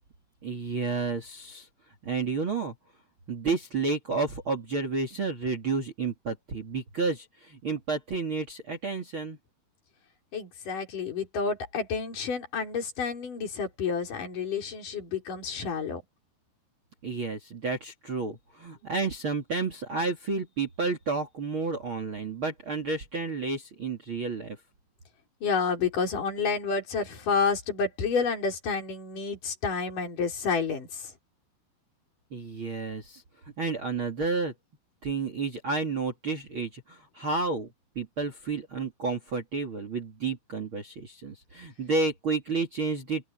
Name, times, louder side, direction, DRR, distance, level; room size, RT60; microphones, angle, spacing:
voice 1, 0.4-1.7 2.0-2.7 3.3-9.4 17.0-24.6 32.3-33.2 33.6-34.5 35.0-37.7 38.0-43.3, right 4 dB, 35° right, 2.6 m, -31 dB
voice 2, 10.3-16.0 25.4-31.1, left 5 dB, 50° left, 6.6 m, -29 dB
open air
omnidirectional pair, 4.8 m